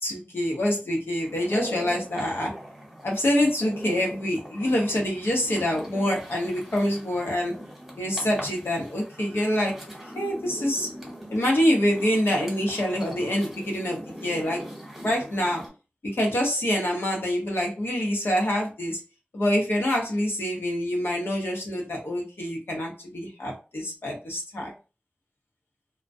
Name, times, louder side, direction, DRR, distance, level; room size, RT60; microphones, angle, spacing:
voice 1, 0.0-2.6 3.0-7.6 8.0-9.8 10.1-10.9 11.3-14.6 15.0-15.6 16.1-19.0 19.3-24.7, equal, 90° left, -1 dB, 0.8 m, -26 dB
sound 1, 1.2-15.7, equal, ahead, 1.1 m, -41 dB
2.2 x 2.1 x 2.5 m, 0.33 s
wide cardioid pair, 70°, 4 cm